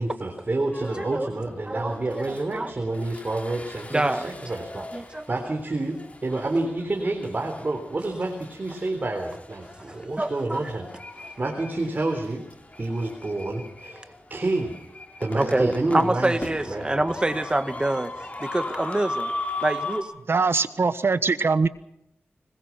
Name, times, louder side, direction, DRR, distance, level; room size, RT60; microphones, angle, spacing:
voice 1, 0.0-10.9 11.4-12.4 12.8-14.7 15.2-16.8, right 2 dB, 40° right, 3 dB, 3.9 m, -29 dB
sound 1, 0.7-1.2 1.8-20.0, left 2 dB, 30° left, 4.3 m, -38 dB
voice 2, 1.0-1.3 1.7-2.0 2.3-2.7 3.9-4.3 4.9-5.2 10.2-10.6 15.4-18.1 18.4-19.3 19.6-20.1, right 1 dB, 20° right, 10 dB, 1.9 m, -26 dB
voice 3, 20.3-21.7, right 4 dB, 65° right, 13 dB, 1.3 m, -22 dB
25.5 x 21.0 x 6.0 m, 0.80 s
wide cardioid pair, 95°, 4 cm